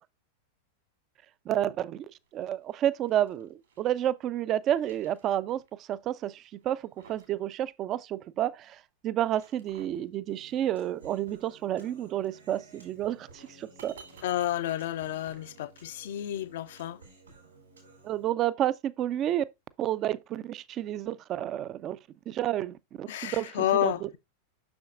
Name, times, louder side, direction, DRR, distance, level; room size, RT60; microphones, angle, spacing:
voice 1, 1.5-2.1 2.3-14.0 18.0-19.4 19.8-22.0 22.3-24.2, right 12 dB, 35° right, 0.4 m, -30 dB
sound 1, 2.2-4.0 4.5-5.7 6.0-6.1 6.6-7.4 7.7-7.8 9.0-10.1 12.0-16.1, right 5 dB, 65° right, 2.2 m, -56 dB
Human voice, 10.3-18.3, right 3 dB, 85° right, 3.5 m, -55 dB
voice 2, 14.2-17.0 23.1-24.2, left 12 dB, 55° left, 0.5 m, -30 dB
6.9 x 6.3 x 2.4 m
figure-of-eight pair, 90°, 0 cm